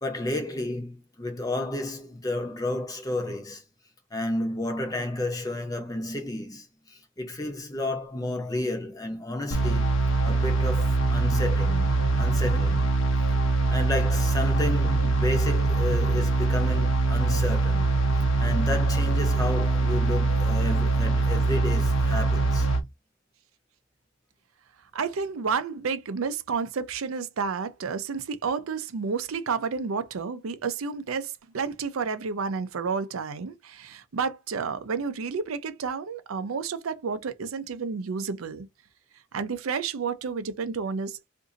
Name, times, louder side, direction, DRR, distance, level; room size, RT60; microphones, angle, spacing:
voice 1, 0.0-3.6 4.1-9.9 10.2-12.8 13.2-13.3 13.7-22.7, left 1 dB, 15° left, 0.7 m, -32 dB
sound 1, 9.5-22.8, right 3 dB, 70° left, 0.8 m, -23 dB
voice 2, 24.9-38.7 39.3-41.2, right 5 dB, 90° right, 0.5 m, -30 dB
2.6 x 2.5 x 3.8 m
head